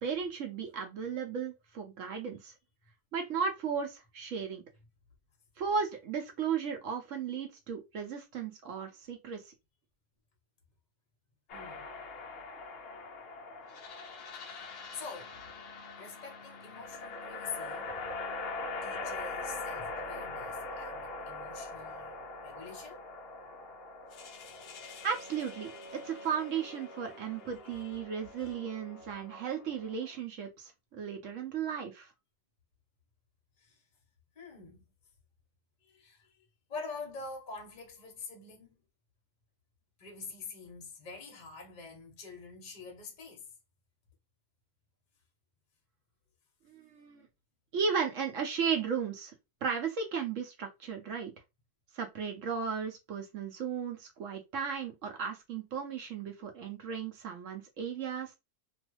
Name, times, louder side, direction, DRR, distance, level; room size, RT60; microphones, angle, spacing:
voice 1, 0.0-2.5 3.1-4.6 5.6-9.5 25.0-32.1 46.7-47.3 47.7-49.3 49.6-51.3 51.9-58.3, right 6 dB, 65° right, 0.8 m, -35 dB
sound 1, 11.5-30.2, left 3 dB, 75° left, 0.5 m, -42 dB
voice 2, 11.5-11.8 14.4-14.6 14.9-15.4 16.0-17.9 18.8-23.0 27.6-27.9 28.4-28.6 33.6-33.8 34.4-34.8 35.8-36.4 36.7-38.7 40.0-43.4, left 4 dB, 40° left, 0.7 m, -46 dB
2.6 x 2.3 x 3.0 m
omnidirectional pair, 1.7 m